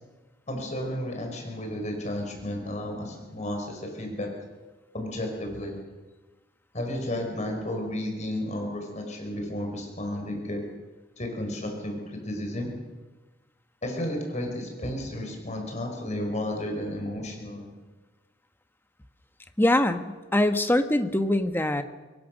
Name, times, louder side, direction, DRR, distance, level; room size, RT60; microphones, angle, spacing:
voice 1, 0.5-4.3 4.9-5.7 6.7-10.6 11.2-12.7 13.8-17.7, left 1 dB, 40° left, 2 dB, 5.2 m, -32 dB
voice 2, 19.6-21.8, left 1 dB, 10° left, 8 dB, 1.4 m, -23 dB
25.5 x 22.5 x 6.5 m, 1.2 s
head